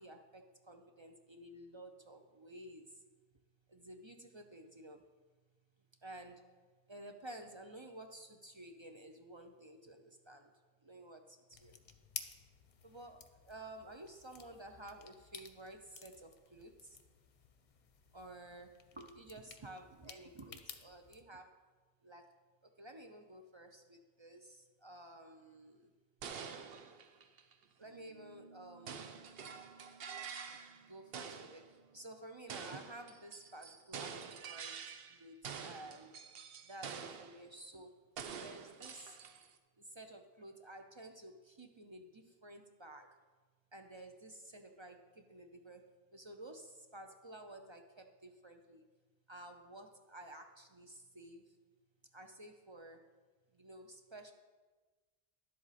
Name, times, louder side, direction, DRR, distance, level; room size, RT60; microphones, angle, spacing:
voice 1, 0.0-3.0 3.7-5.1 6.0-6.6 6.9-10.5 10.8-11.8 12.8-17.0 18.1-21.6 22.0-25.9 27.8-29.0 30.9-36.2 36.6-39.2 39.8-43.2 43.7-48.8 49.3-51.6 52.1-53.0 53.5-54.3, right 1 dB, 35° right, 5 dB, 0.5 m, -53 dB
sound 1, 11.5-21.2, left 6 dB, 50° left, 0.7 m, -54 dB
sound 2, 26.2-27.6 28.9-30.8 31.1-31.7 32.5-35.2 35.4-37.4 38.2-39.6, right 6 dB, 70° right, 0.9 m, -47 dB
sound 3, 27.8-34.8, right 4 dB, 50° right, 2.7 m, -64 dB
11.0 x 7.6 x 4.2 m, 1.3 s
omnidirectional pair, 1.1 m